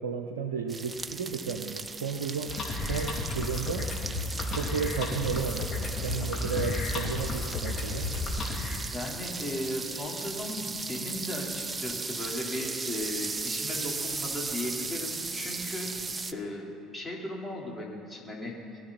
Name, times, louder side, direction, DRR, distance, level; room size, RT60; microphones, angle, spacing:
voice 1, 0.0-3.9 4.5-8.1, right 6 dB, 80° right, 4 dB, 0.8 m, -33 dB
sound 1, 0.7-16.3, right 4 dB, 25° right, 0.8 m, -37 dB
sound 2, 2.5-8.8, left 3 dB, 40° left, 3.3 m, -33 dB
voice 2, 8.9-15.9 16.3-18.5, left 1 dB, 15° left, -4 dB, 4.4 m, -36 dB
22.5 x 13.5 x 4.4 m, 2.4 s
figure-of-eight pair, 60°, 0 cm